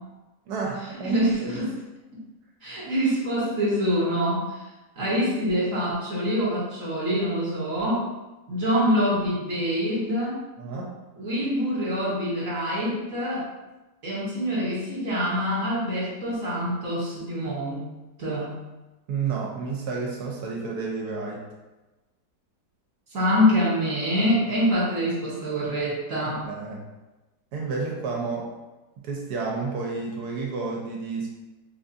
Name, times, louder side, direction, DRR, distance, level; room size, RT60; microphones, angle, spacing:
voice 1, 0.5-1.6 10.6-10.9 19.1-21.4 26.4-26.8 27.5-28.5 29.0-31.3, right 4 dB, 70° right, -1 dB, 1.1 m, -31 dB
voice 2, 1.0-1.7 2.6-4.6 5.0-8.1 8.5-10.4 11.2-13.5 14.0-17.9 18.2-18.6 23.1-26.4, equal, 55° right, -7 dB, 1.3 m, -25 dB
3.8 x 2.3 x 2.6 m, 1.1 s
omnidirectional pair, 1.9 m